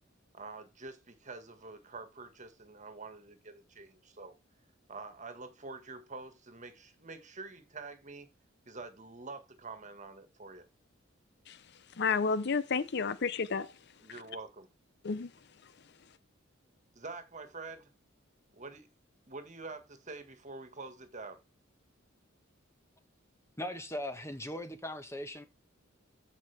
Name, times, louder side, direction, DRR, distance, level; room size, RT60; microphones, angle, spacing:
voice 1, 0.3-4.3 4.9-8.3 8.7-10.7 14.0-14.7 17.0-17.9 18.5-18.9 19.3-21.4, right 3 dB, 40° right, 1.7 m, -46 dB
voice 2, 12.0-13.7 15.0-15.3, left 5 dB, 60° left, 0.7 m, -30 dB
voice 3, 23.6-25.5, left 1 dB, 15° left, 1.3 m, -39 dB
15.0 x 5.4 x 3.5 m
head